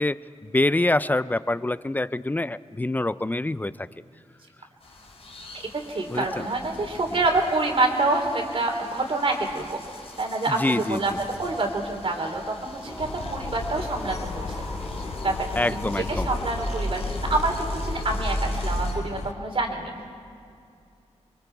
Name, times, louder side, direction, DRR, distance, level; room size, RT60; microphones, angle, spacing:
voice 1, 0.0-3.7 6.1-6.5 10.5-11.2 15.6-16.3, left 2 dB, 15° left, 16 dB, 0.4 m, -25 dB
sound 1, 4.8-19.0, left 2 dB, 60° left, 3.4 m, -46 dB
voice 2, 5.9-11.1 11.4-14.6 15.2-15.4 15.7-20.1, right 2 dB, 50° right, 3 dB, 3.3 m, -27 dB
sound 2, 12.8-18.8, equal, ahead, 4.0 m, -32 dB
sound 3, 13.0-19.3, left 5 dB, 75° left, 0.7 m, -36 dB
27.0 x 23.5 x 4.7 m, 2.4 s
wide cardioid pair, 110°, 12 cm